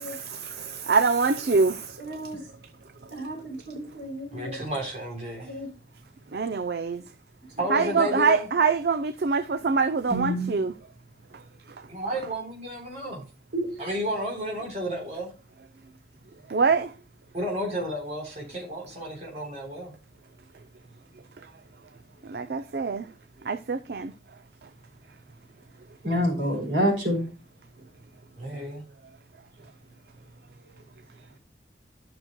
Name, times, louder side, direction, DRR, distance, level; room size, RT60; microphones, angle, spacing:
voice 1, 0.0-2.2 6.3-7.0 7.7-10.7 16.5-16.9 22.2-23.1 23.4-24.1, right 4 dB, 60° right, 0.5 m, -25 dB
voice 2, 2.0-2.4 3.1-4.6 5.4-5.7 7.7-7.8 10.1-10.5 13.5-13.7 26.0-27.2, equal, 80° right, 4.1 m, -28 dB
voice 3, 4.3-5.5 7.6-8.5 11.9-13.2 13.8-15.3 17.3-19.9 26.1-26.5 28.4-28.8, equal, 40° right, 3.4 m, -32 dB
12.5 x 6.2 x 2.2 m
head